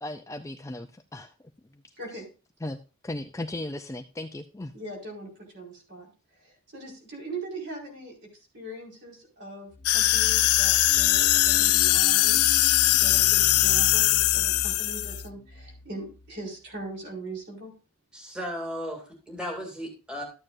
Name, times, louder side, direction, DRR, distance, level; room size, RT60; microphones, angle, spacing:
voice 1, 0.0-1.3 1.7-1.8 2.6-2.8 3.0-4.7, left 1 dB, 15° left, 6 dB, 0.4 m, -36 dB
voice 2, 2.0-2.3 4.7-6.1 6.4-12.5 12.9-17.7, right 2 dB, 50° right, -1 dB, 4.9 m, -40 dB
sound 1, 9.7-16.4, left 2 dB, 30° left, 0.8 m, -38 dB
sound 2, 9.8-15.2, left 16 dB, 85° left, 0.5 m, -21 dB
voice 3, 18.1-20.2, equal, 5° right, 0 dB, 2.3 m, -35 dB
13.0 x 8.8 x 2.6 m, 0.34 s
head